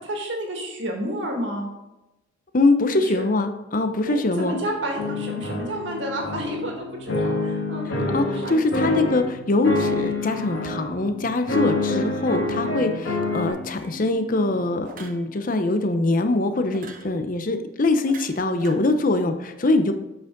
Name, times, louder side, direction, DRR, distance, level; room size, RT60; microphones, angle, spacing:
voice 1, 0.0-1.7 2.9-3.2 4.1-7.9 8.3-9.0, right 1 dB, 65° right, 1 dB, 1.9 m, -30 dB
voice 2, 2.5-4.6 8.1-19.9, left 2 dB, 45° left, 8 dB, 0.7 m, -23 dB
sound 1, 4.2-16.4, left 1 dB, 10° right, 1.4 m, -44 dB
sound 2, 5.0-6.7 7.1-9.3 9.6-10.9 11.5-13.5, left 2 dB, 70° left, 1.7 m, -26 dB
sound 3, 13.8-14.0 14.8-15.2 16.7-17.1 18.0-18.8, right 3 dB, 45° right, 0.9 m, -42 dB
8.0 x 5.8 x 3.8 m, 0.98 s
head